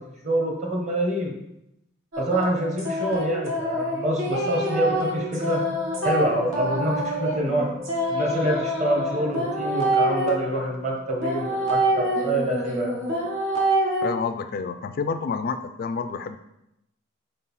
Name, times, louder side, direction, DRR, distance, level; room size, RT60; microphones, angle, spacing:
voice 1, 0.2-1.3 2.2-5.7 6.0-7.7 8.1-12.9, right 1 dB, 35° right, 0 dB, 1.3 m, -26 dB
sound 1, 2.1-10.3 11.2-14.0, right 1 dB, 75° right, 1.5 m, -26 dB
sound 2, 4.3-13.4, left 2 dB, 10° right, 0.5 m, -40 dB
voice 2, 14.0-16.4, left 5 dB, 45° left, 9 dB, 0.3 m, -29 dB
4.6 x 4.1 x 5.5 m, 0.84 s
head